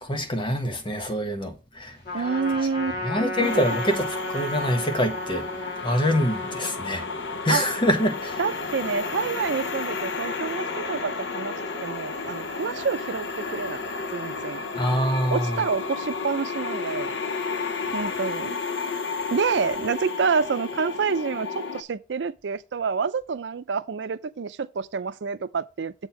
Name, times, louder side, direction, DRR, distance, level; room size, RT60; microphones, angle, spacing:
voice 1, 0.0-2.3 3.0-4.1 4.3-5.4 5.8-7.0 7.4-8.4 14.7-15.6, equal, 30° left, 1.2 m, -25 dB
Trumpet, 2.0-6.7, left 1 dB, 60° left, 2.5 m, -33 dB
voice 2, 2.1-3.0 3.4-3.6 7.5-7.6 8.4-13.8 14.1-14.6 15.3-17.2 17.9-18.6 19.3-25.9, right 5 dB, 85° right, 0.5 m, -28 dB
sound 1, 3.4-21.8, left 4 dB, 80° left, 0.8 m, -32 dB
7.5 x 4.4 x 5.7 m
head